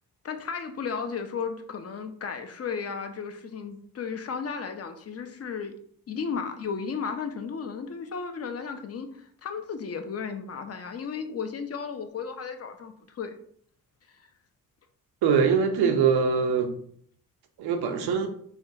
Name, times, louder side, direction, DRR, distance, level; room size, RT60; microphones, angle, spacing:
voice 1, 0.2-5.7 6.1-13.4, left 6 dB, 40° left, 7 dB, 0.5 m, -34 dB
voice 2, 15.2-16.7 17.6-18.3, right 6 dB, 90° right, 6 dB, 0.5 m, -23 dB
3.4 x 2.3 x 2.6 m, 0.63 s
cardioid pair, 65°, 37 cm